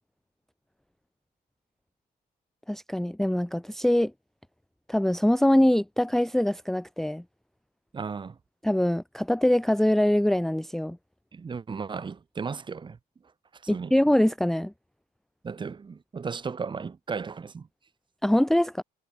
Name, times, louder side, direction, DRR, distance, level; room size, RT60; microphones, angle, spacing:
voice 1, 2.7-4.1 4.9-7.2 8.6-11.0 13.7-14.7 18.2-18.8, left 1 dB, ahead, 0.7 m, -23 dB
voice 2, 7.9-8.4 11.3-13.0 13.5-13.9 15.4-17.7, right 5 dB, 30° right, 2.0 m, -35 dB
cardioid pair, 110°, 17 cm